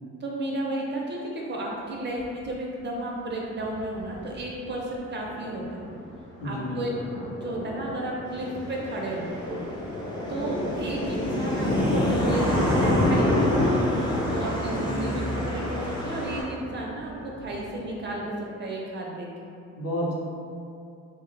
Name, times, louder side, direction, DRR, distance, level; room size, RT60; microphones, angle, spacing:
voice 1, 0.2-5.8 6.4-6.9 7.3-9.3 10.3-13.6 14.3-19.3, right 1 dB, 40° right, -2 dB, 0.4 m, -33 dB
Thunder, 2.2-2.3 3.6-4.4 4.7-4.8 5.2-5.5 5.8-18.2, left 1 dB, 75° left, 0.9 m, -28 dB
voice 2, 6.4-7.1 14.8-15.2 19.7-20.1, equal, 50° left, -5 dB, 0.7 m, -31 dB
sound 1, 8.3-16.4, equal, 15° left, 0.5 m, -32 dB
2.1 x 2.0 x 3.0 m, 2.4 s
cardioid pair, 90°, 30 cm